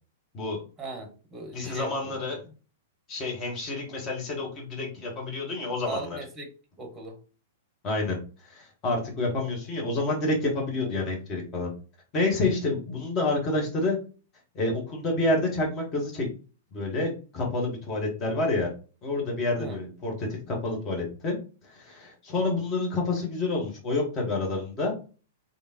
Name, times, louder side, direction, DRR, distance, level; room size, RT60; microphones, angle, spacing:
voice 1, 0.8-2.4 5.9-6.5 6.8-7.2 10.8-11.0 19.6-19.8, right 3 dB, 15° right, 0.9 m, -39 dB
voice 2, 1.5-2.4 3.1-6.1 7.8-8.2 8.4-11.7 12.1-14.0 14.5-16.3 16.7-18.7 19.0-21.4 21.7-24.9, left 2 dB, 30° left, 1.4 m, -28 dB
3.4 x 2.7 x 2.9 m
figure-of-eight pair, 100°, 0 cm